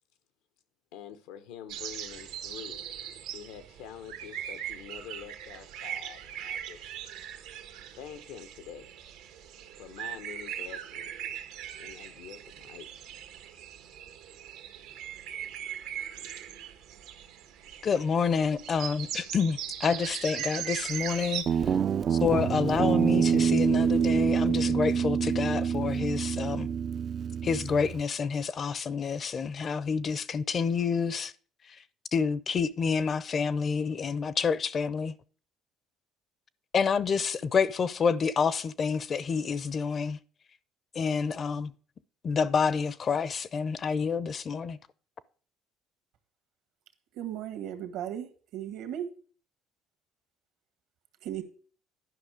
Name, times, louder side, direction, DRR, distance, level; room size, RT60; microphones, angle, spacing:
voice 1, 0.9-2.8 3.3-6.9 7.9-8.9 9.8-11.3 11.8-13.0, left 9 dB, 85° left, 1.0 m, -46 dB
sound 1, 1.7-21.4, right 10 dB, 90° right, 1.6 m, -40 dB
voice 2, 17.8-21.8 22.1-26.7 27.4-31.3 31.7-31.8 32.1-35.1 36.7-40.2 40.9-41.7 42.2-44.8, left 5 dB, 40° left, 0.6 m, -28 dB
Guitar, 21.5-28.0, right 7 dB, 45° right, 0.4 m, -26 dB
voice 3, 47.1-49.1 51.2-51.4, right 10 dB, 75° right, 1.6 m, -36 dB
11.0 x 5.6 x 5.0 m
cardioid pair, 105°, 0 cm